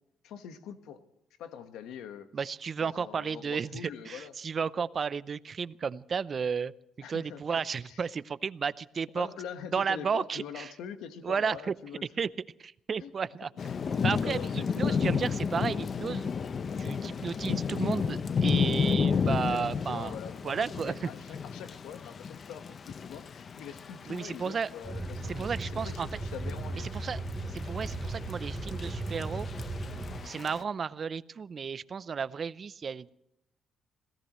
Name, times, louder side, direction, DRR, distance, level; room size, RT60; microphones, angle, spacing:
voice 1, 0.2-1.0 1.4-2.3 2.8-4.3 7.0-7.4 7.8-8.0 9.1-12.0 13.0-13.1 13.6-15.0 19.5-26.9, left 8 dB, 90° left, 9 dB, 1.4 m, -44 dB
voice 2, 2.3-6.7 7.1-9.3 9.7-10.7 11.2-11.7 12.2-12.3 12.6-13.5 14.0-16.3 16.8-20.1 20.4-21.1 24.1-24.7 25.3-26.1 26.9-27.2 27.5-29.5 30.2-33.1, right 6 dB, 45° right, 17 dB, 0.6 m, -33 dB
Thunder / Rain, 13.6-30.6, left 6 dB, 45° left, 0.7 m, -32 dB
sound 1, 24.8-30.2, right 2 dB, 5° right, 3.6 m, -36 dB
26.0 x 17.0 x 3.1 m, 0.80 s
cardioid pair, 90°, 0 cm